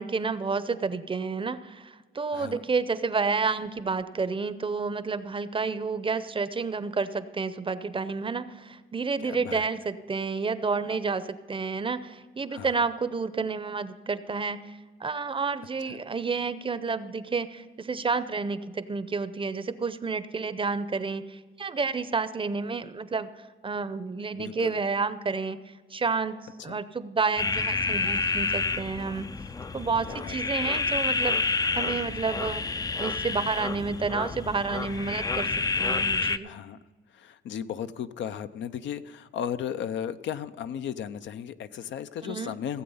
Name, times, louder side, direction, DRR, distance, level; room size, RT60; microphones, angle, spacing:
voice 1, 0.0-26.4 26.6-29.3 29.7-32.6 33.0-35.5 35.8-36.5 42.2-42.5, right 4 dB, 25° right, 13 dB, 0.7 m, -30 dB
voice 2, 2.3-2.6 9.2-9.6 12.5-12.8 15.9-16.0 24.3-24.7 26.7-26.8 30.1-30.6 36.4-36.8 37.1-42.8, left 9 dB, 70° left, 11 dB, 0.6 m, -35 dB
sound 1, 27.4-36.4, left 4 dB, 20° left, 0.4 m, -29 dB
16.5 x 7.7 x 5.6 m, 1.4 s
cardioid pair, 90°, 20 cm